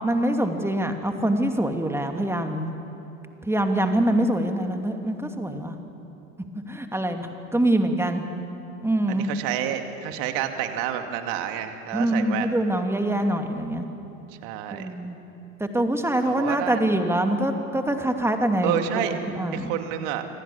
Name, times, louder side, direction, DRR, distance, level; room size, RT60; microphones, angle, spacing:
voice 1, 0.0-2.7 3.4-5.8 6.7-8.2 8.8-9.3 11.9-13.8 14.7-15.2 15.6-19.7, right 1 dB, 5° right, 5 dB, 2.6 m, -24 dB
voice 2, 9.1-12.6 14.4-14.9 16.2-16.9 18.6-19.2 19.5-20.3, right 11 dB, 55° right, 6 dB, 2.5 m, -29 dB
27.5 x 25.5 x 7.2 m, 2.9 s
figure-of-eight pair, 75°, 42 cm